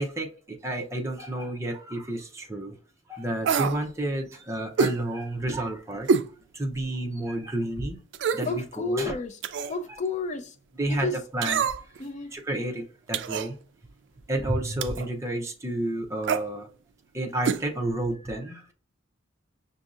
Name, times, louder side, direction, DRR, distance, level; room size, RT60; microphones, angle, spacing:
voice 1, 0.0-2.8 3.1-6.1 6.5-8.0 8.3-9.1 9.6-9.7 10.8-11.7 12.3-13.6 14.3-16.7 17.1-18.7, right 1 dB, 15° right, 0.6 m, -30 dB
sound 1, 3.4-3.8 4.8-5.0 6.1-6.3 6.8-6.9 8.1-8.5 9.4-9.8 11.4-12.0 13.1-13.5 14.8-15.1 16.2-16.5 17.4-17.6 17.9-18.0, right 5 dB, 65° right, 0.3 m, -25 dB
voice 2, 8.4-9.4 9.7-10.6 10.9-11.2 12.0-12.3, left 3 dB, 40° left, 0.5 m, -31 dB
6.1 x 2.7 x 2.4 m
head